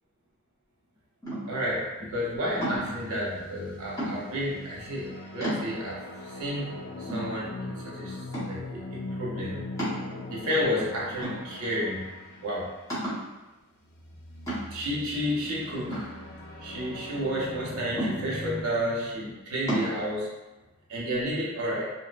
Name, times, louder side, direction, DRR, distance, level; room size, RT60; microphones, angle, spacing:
sound 1, 1.2-1.7 2.6-3.0 4.0-4.5 5.0-5.1 5.4-6.0 6.6-6.7 7.1-7.8 8.3-8.7 9.8-10.5 11.2-11.9 12.2-12.3 12.9-13.3 14.5-14.9 15.9-16.8 18.0-18.6 19.7-19.9, right 1 dB, 15° left, 0.8 m, -33 dB
voice 1, 1.5-8.2 8.5-9.6 10.3-12.0 12.4-12.7 14.7-16.1 16.6-20.3 20.9-21.9, equal, 65° right, -5 dB, 0.7 m, -31 dB
sound 2, 2.6-12.9 13.8-18.6, left 1 dB, 50° left, 0.4 m, -41 dB
2.7 x 2.1 x 2.3 m, 1.1 s
head